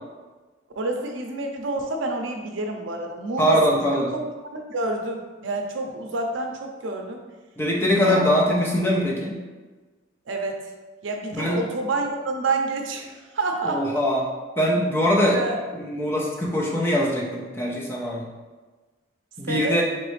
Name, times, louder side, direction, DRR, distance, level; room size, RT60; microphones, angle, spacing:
voice 1, 0.8-3.6 3.9-4.2 4.5-7.2 8.0-8.6 10.3-10.6 11.0-13.8 15.3-15.6 19.4-19.8, right 2 dB, 80° right, 3 dB, 0.5 m, -28 dB
voice 2, 3.4-4.1 7.6-9.4 11.3-11.6 13.7-14.3 14.6-15.4 15.7-18.3 19.4-19.8, equal, 10° left, -3 dB, 0.5 m, -22 dB
4.1 x 3.2 x 3.1 m, 1.3 s
head